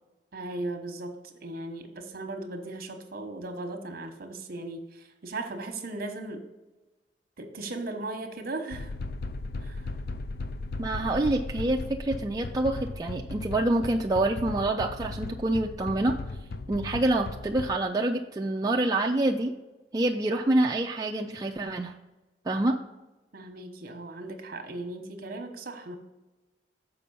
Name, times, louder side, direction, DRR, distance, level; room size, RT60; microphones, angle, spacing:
voice 1, 0.3-6.5 7.4-8.9 9.6-9.8 23.3-25.9, right 2 dB, 55° right, 6 dB, 1.0 m, -37 dB
sound 1, 8.7-17.8, left 3 dB, 60° left, 0.4 m, -37 dB
voice 2, 10.8-16.1 16.7-19.5 19.9-21.9 22.5-22.8, right 2 dB, 20° right, 1 dB, 0.4 m, -26 dB
6.8 x 5.1 x 5.4 m, 1.1 s
head